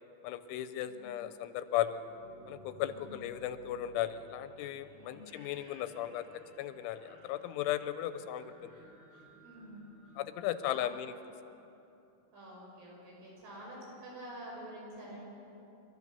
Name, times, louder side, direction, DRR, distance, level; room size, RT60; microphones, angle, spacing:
voice 1, 0.2-2.0 2.5-6.3 6.6-8.7 10.2-11.1, left 12 dB, 85° left, 11 dB, 3.0 m, -36 dB
sound 1, 1.9-11.7, right 1 dB, 40° right, 1.7 m, -57 dB
voice 2, 2.8-3.2 4.9-5.2 9.4-9.9 10.7-10.8 12.3-15.2, right 1 dB, 75° right, -4 dB, 8.3 m, -48 dB
29.5 x 13.0 x 6.9 m, 2.8 s
omnidirectional pair, 5.6 m